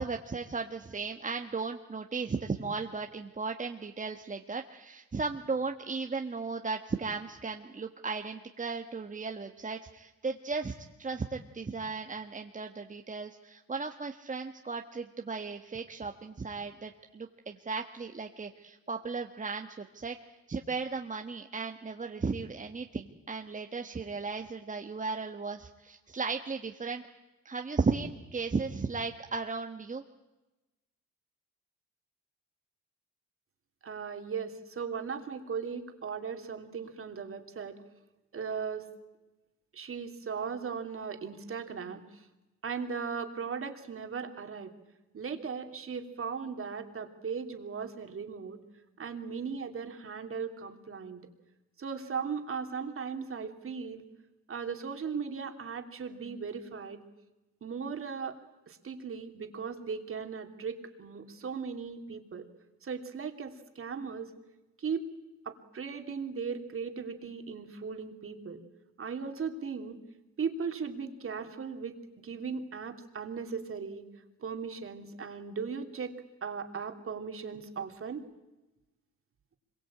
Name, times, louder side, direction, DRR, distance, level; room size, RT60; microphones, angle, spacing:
voice 1, 0.0-10.7 11.0-20.2 20.5-27.0 27.4-30.0, right 4 dB, 25° right, 4 dB, 1.5 m, -35 dB
voice 2, 33.8-37.8 38.3-38.8 39.7-42.3 42.6-44.7 45.1-48.6 49.0-51.3 51.8-54.0 54.5-57.0 57.6-58.4 58.7-62.5 62.8-64.3 64.8-65.0 65.4-68.6 69.0-70.0 70.4-74.0 74.4-76.1 76.4-78.2, right 6 dB, 45° right, 6 dB, 3.1 m, -37 dB
25.5 x 23.0 x 8.7 m, 1.0 s
cardioid pair, 90°, 30 cm